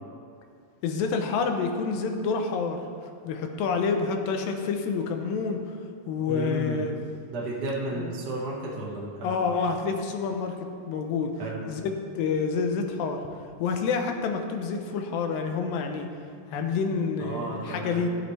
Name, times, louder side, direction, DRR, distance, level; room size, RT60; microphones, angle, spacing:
voice 1, 0.8-2.8 3.2-5.6 6.1-7.0 7.9-8.1 9.2-11.3 11.7-13.2 13.6-16.1 16.5-18.1, left 5 dB, 90° left, 5 dB, 2.6 m, -28 dB
voice 2, 6.3-6.8 7.3-9.6 11.4-11.6 17.2-18.0, right 2 dB, 40° right, -5 dB, 1.5 m, -33 dB
15.5 x 7.9 x 3.3 m, 2.3 s
omnidirectional pair, 4.0 m